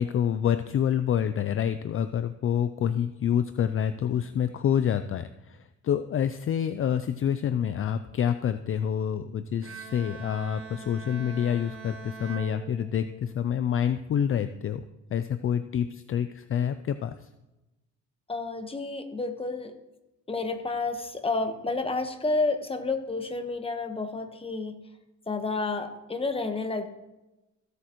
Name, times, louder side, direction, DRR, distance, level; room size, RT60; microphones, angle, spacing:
voice 1, 0.0-14.8 15.1-17.1, left 9 dB, 45° left, 11 dB, 0.5 m, -27 dB
Bowed string instrument, 9.6-13.4, right 6 dB, 50° right, 1.2 m, -43 dB
voice 2, 18.3-19.8 20.3-24.8 25.3-26.9, left 3 dB, 20° left, 7 dB, 1.2 m, -30 dB
15.5 x 7.9 x 3.1 m, 1.0 s
cardioid pair, 90°, 30 cm